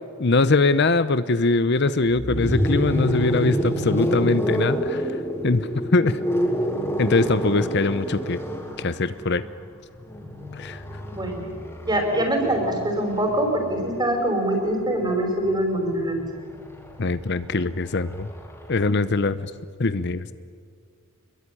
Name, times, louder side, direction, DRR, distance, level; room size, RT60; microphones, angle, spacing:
voice 1, 0.2-5.6 5.9-6.2 7.0-8.4 8.8-9.4 10.5-10.8 17.0-18.3 18.7-19.5 19.8-20.3, left 3 dB, 55° left, 14 dB, 0.8 m, -22 dB
sound 1, 2.1-14.0 15.3-18.9, equal, 10° left, 3.9 m, -28 dB
voice 2, 11.9-16.2, right 1 dB, 20° right, 3 dB, 5.6 m, -23 dB
27.0 x 22.0 x 10.0 m, 2.1 s
head